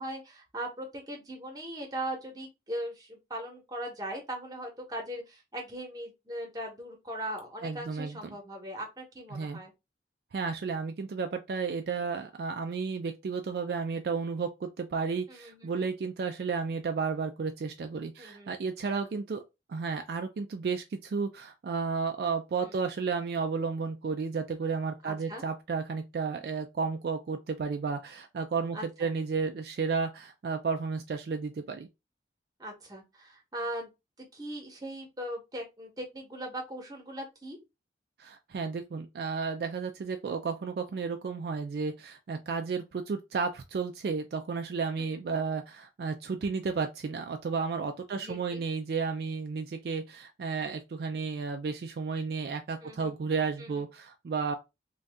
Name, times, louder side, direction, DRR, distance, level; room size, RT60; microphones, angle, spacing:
voice 1, 0.0-9.7 15.3-15.9 18.2-18.6 22.6-22.8 25.0-25.4 28.7-29.1 32.6-33.9 34.2-37.6 45.0-45.4 48.1-48.6 52.8-53.1 53.6-53.8, right 1 dB, 20° right, 0.9 m, -39 dB
voice 2, 7.6-8.4 9.3-9.6 10.3-19.4 19.7-31.9 38.2-54.5, right 5 dB, 60° right, 0.3 m, -32 dB
2.6 x 2.3 x 3.4 m
head